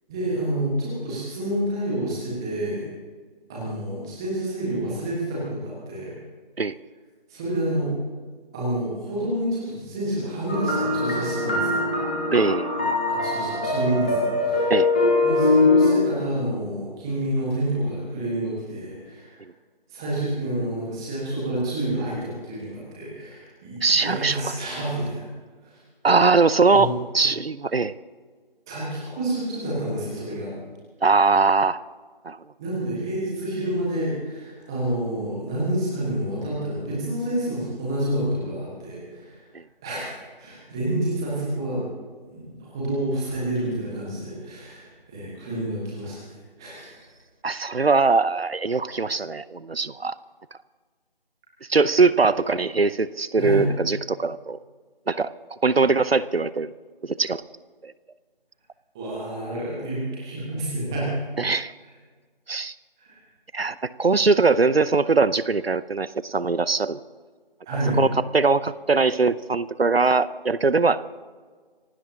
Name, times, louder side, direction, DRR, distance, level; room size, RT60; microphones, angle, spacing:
voice 1, 0.1-2.8 3.5-6.1 7.3-7.9 8.5-11.8 13.1-14.7 15.2-19.4 19.9-25.2 25.6-25.8 26.7-26.9 28.7-30.5 32.6-39.5 39.8-40.0 40.4-41.8 42.3-47.0 53.4-53.6 58.9-61.1 63.0-63.2 67.6-68.0, right 1 dB, 5° right, -6 dB, 1.5 m, -28 dB
sound 1, 10.5-15.9, left 2 dB, 10° left, 1.3 m, -22 dB
voice 2, 12.3-12.9 14.7-14.9 23.8-24.4 26.0-27.9 31.0-31.8 32.2-32.4 47.4-50.1 51.7-54.6 55.1-55.3 55.6-56.7 57.0-57.4 57.8-57.9 61.4-61.7 62.5-62.7 63.5-67.0 68.0-68.1 68.3-71.0, right 4 dB, 85° right, 17 dB, 0.7 m, -21 dB
26.5 x 16.5 x 2.9 m, 1.5 s
figure-of-eight pair, 165°, 29 cm